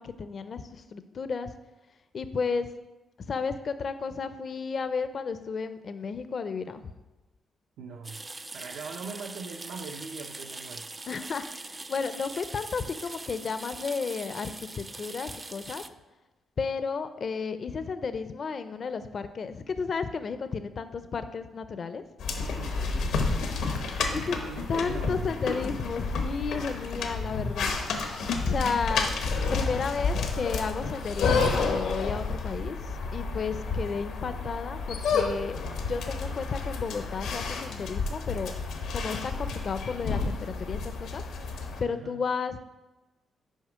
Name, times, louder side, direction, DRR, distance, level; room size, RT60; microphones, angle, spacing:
voice 1, 0.0-1.5 2.1-2.7 3.3-6.9 11.1-15.8 16.6-22.0 24.1-24.4 24.7-27.7 28.4-29.1 29.5-38.5 38.9-41.2 41.8-42.6, left 5 dB, 50° left, 11 dB, 0.4 m, -33 dB
voice 2, 7.8-8.2 8.5-10.9 22.4-23.5 24.0-25.4 41.9-42.2, right 5 dB, 80° right, 2 dB, 0.6 m, -41 dB
sound 1, 8.0-15.9, right 2 dB, 25° right, 0.3 m, -42 dB
sound 2, 22.2-41.8, left 4 dB, 90° left, 0.9 m, -30 dB
6.4 x 5.0 x 5.0 m, 1.1 s
cardioid pair, 100°, 0 cm